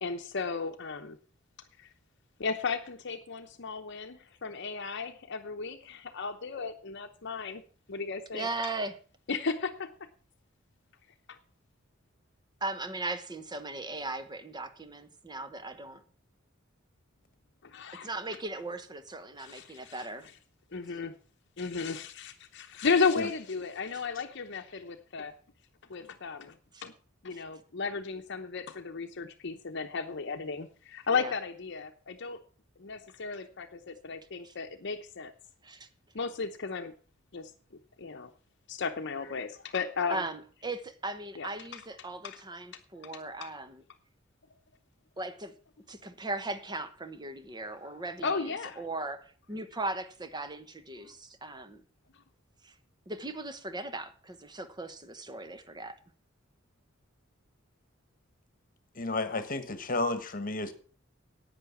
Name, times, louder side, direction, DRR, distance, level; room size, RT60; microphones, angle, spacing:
voice 1, 0.0-1.2 1.8-1.9 2.4-7.6 7.9-8.5 9.3-9.9 11.3-11.4 17.6-18.1 19.4-20.1 20.7-21.1 21.6-25.3 25.9-26.6 26.8-26.9 27.2-32.4 32.8-35.3 36.1-36.9 37.3-37.5 38.0-38.3 38.7-40.2 41.4-41.8 42.2-42.4 43.4-43.5 47.8-47.9 48.2-48.8 51.0-51.1, left 5 dB, 60° left, 0.8 m, -34 dB
voice 2, 8.3-9.0 12.6-16.0 18.0-20.3 26.7-26.8 27.3-27.4 31.1-31.3 34.4-34.5 35.6-35.9 40.1-43.8 45.2-45.5 45.9-51.8 52.6-52.7 53.1-56.0, right 2 dB, 20° right, 1.1 m, -38 dB
voice 3, 58.9-60.7, left 2 dB, 45° left, 1.3 m, -32 dB
10.5 x 8.9 x 7.0 m
head